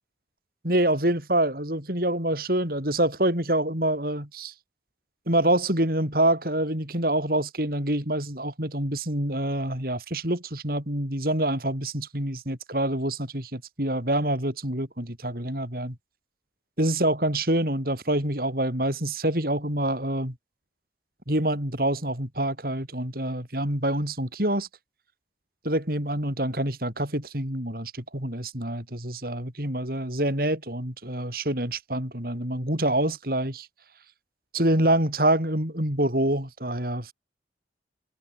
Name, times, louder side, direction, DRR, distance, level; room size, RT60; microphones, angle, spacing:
voice 1, 0.6-4.5 5.3-16.0 16.8-20.3 21.3-24.7 25.6-33.7 34.5-37.1, right 1 dB, 50° right, 6.1 m, -26 dB
head